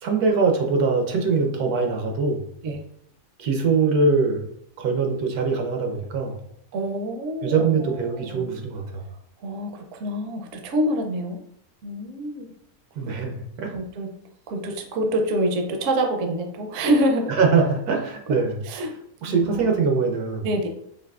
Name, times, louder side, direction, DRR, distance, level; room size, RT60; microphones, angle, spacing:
voice 1, 0.0-2.4 3.4-4.4 4.8-6.4 7.4-9.0 13.0-13.7 17.3-18.6 19.2-20.5, right 4 dB, 85° right, 2 dB, 1.2 m, -22 dB
voice 2, 6.7-8.4 9.4-11.4 11.8-12.5 13.7-14.1 14.5-17.3 18.6-18.9 19.3-19.7 20.4-20.7, right 1 dB, 65° right, 3 dB, 0.8 m, -26 dB
4.8 x 2.5 x 2.3 m, 0.75 s
omnidirectional pair, 1.6 m